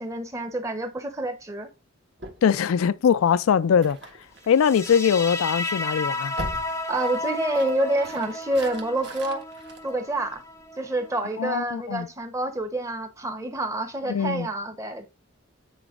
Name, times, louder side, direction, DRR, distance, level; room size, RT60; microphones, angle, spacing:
voice 1, 0.0-1.7 6.9-9.4 9.8-10.4 10.8-15.1, right 1 dB, 15° right, 0.9 m, -28 dB
sound 1, 2.2-10.6, right 1 dB, 55° right, 1.4 m, -43 dB
voice 2, 2.4-4.0 4.5-6.3 11.4-12.1 14.1-14.5, left 7 dB, 85° left, 0.4 m, -21 dB
sound 2, 4.5-11.6, left 2 dB, 15° left, 0.6 m, -33 dB
8.9 x 4.2 x 2.5 m
head